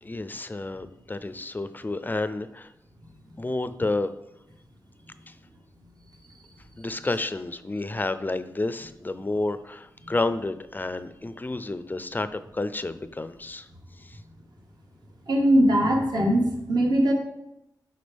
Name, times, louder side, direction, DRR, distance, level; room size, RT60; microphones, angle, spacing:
voice 1, 0.0-2.7 3.4-4.1 5.3-5.4 6.8-13.7 14.0-14.2, left 2 dB, 25° left, 12 dB, 0.4 m, -30 dB
voice 2, 15.3-17.1, equal, 60° right, 0 dB, 1.4 m, -21 dB
9.4 x 4.0 x 3.4 m, 0.87 s
cardioid pair, 60°, 8 cm